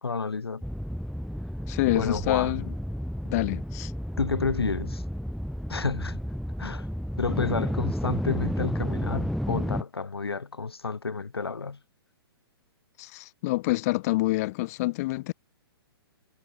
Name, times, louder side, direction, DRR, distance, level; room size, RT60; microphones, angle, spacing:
voice 1, 0.0-0.6 1.9-2.6 4.2-5.0 5.7-6.2 6.6-6.9 7.2-11.8, left 4 dB, 80° left, 1.6 m, -30 dB
sound 1, 0.6-9.8, equal, ahead, 1.8 m, -32 dB
voice 2, 1.7-2.7 3.3-3.9 13.0-15.3, left 20 dB, 40° left, 1.3 m, -27 dB
figure-of-eight pair, 120°, 13 cm